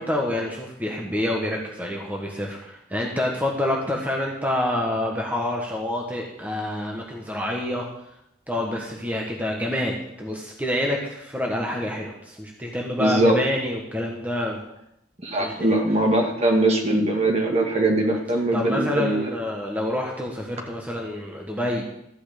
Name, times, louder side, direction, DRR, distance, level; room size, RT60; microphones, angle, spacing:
voice 1, 0.0-7.9 8.5-14.6 15.4-15.8 18.1-18.2 18.5-21.8, left 1 dB, 10° right, -1 dB, 1.4 m, -27 dB
voice 2, 13.0-13.4 15.2-19.2, right 1 dB, 35° right, 1 dB, 2.2 m, -21 dB
14.0 x 5.7 x 8.4 m, 0.82 s
head